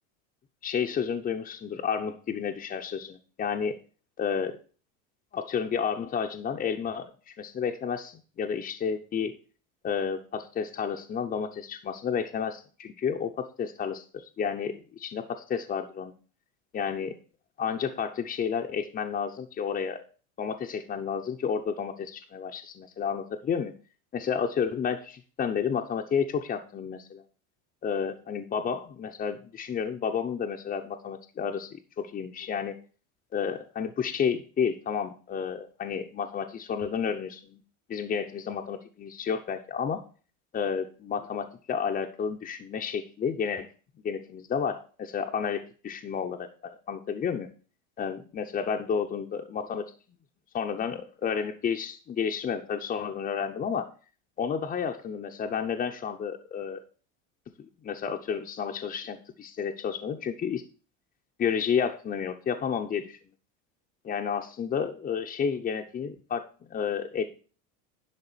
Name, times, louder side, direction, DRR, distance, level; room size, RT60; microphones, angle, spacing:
voice 1, 0.6-3.8 4.2-4.6 5.3-9.4 9.8-16.1 16.7-17.1 17.6-20.0 20.4-23.7 24.1-27.2 27.8-32.8 33.3-37.6 37.9-40.0 40.5-43.7 44.0-47.5 48.0-49.9 50.5-53.9 54.4-56.8 57.6-60.6 61.4-63.2 64.0-67.3, left 7 dB, 25° left, 2 dB, 0.8 m, -31 dB
11.0 x 3.7 x 7.3 m, 0.39 s
supercardioid pair, 125°, 36 cm